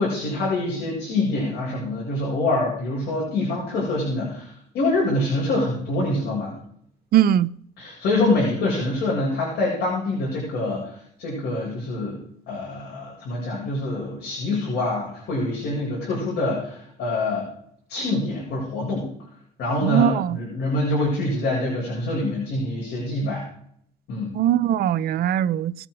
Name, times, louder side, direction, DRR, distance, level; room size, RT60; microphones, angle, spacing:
voice 1, 0.0-6.5 7.8-12.2 12.5-17.5 17.9-19.1 19.6-23.4 24.1-24.3, left 2 dB, 70° left, 7.9 m, -25 dB
voice 2, 7.1-7.5 19.8-20.4 24.3-25.7, right 10 dB, 65° right, 0.7 m, -20 dB
21.0 x 9.1 x 4.9 m
cardioid pair, 110°, 17 cm